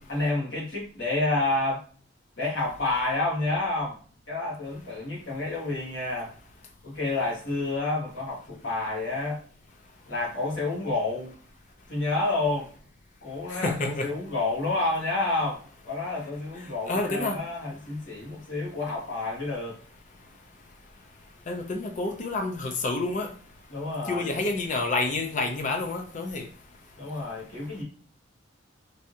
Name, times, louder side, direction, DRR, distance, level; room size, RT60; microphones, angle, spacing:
voice 1, 0.0-1.8 2.4-4.0 4.3-6.3 6.8-9.4 10.1-11.3 11.9-12.7 13.2-19.7 23.7-24.4 27.0-27.8, left 2 dB, 65° left, 1.4 m, -29 dB
voice 2, 13.5-14.1 16.9-17.4 21.5-23.3 24.1-26.4, left 3 dB, 40° left, 0.4 m, -28 dB
3.3 x 2.6 x 2.7 m
head